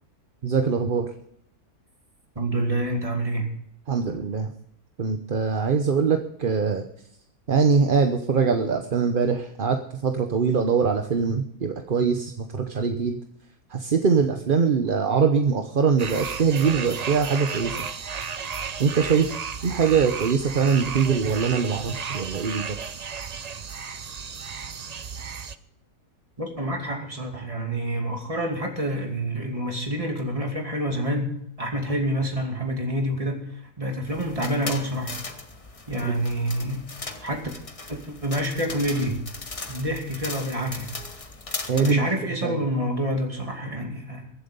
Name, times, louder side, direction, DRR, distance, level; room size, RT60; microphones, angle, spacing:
voice 1, 0.4-1.1 3.9-4.5 5.0-6.8 7.5-13.2 13.7-17.8 18.8-19.4 19.6-22.8 36.0-36.1 41.7-42.1 42.4-42.6, right 5 dB, 40° right, 5 dB, 0.9 m, -23 dB
voice 2, 2.4-3.5 26.4-33.5 33.8-35.2 35.9-36.8 37.2-37.5 37.9-39.2 39.7-40.9 41.8-44.3, right 1 dB, 20° right, 2 dB, 2.7 m, -27 dB
sound 1, 16.0-25.6, right 6 dB, 65° right, 0.4 m, -34 dB
sound 2, 34.1-41.9, left 3 dB, 25° left, 1.1 m, -38 dB
23.0 x 7.8 x 5.4 m, 0.72 s
omnidirectional pair, 1.7 m